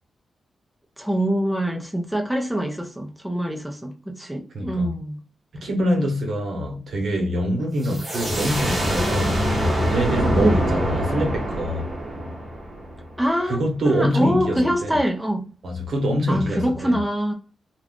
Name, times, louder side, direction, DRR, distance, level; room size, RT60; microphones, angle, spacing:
voice 1, 1.0-5.2 6.7-6.9 7.9-8.1 10.4-10.6 13.2-13.6 13.8-15.5 16.3-17.3, equal, 5° right, 0.6 m, -24 dB
voice 2, 4.5-4.9 5.6-9.4 9.9-11.9 13.5-14.9 15.6-16.9, equal, 70° right, 0.9 m, -24 dB
sound 1, 7.8-13.4, equal, 20° right, 1.0 m, -24 dB
2.4 x 2.3 x 3.6 m
wide cardioid pair, 125°, 0 cm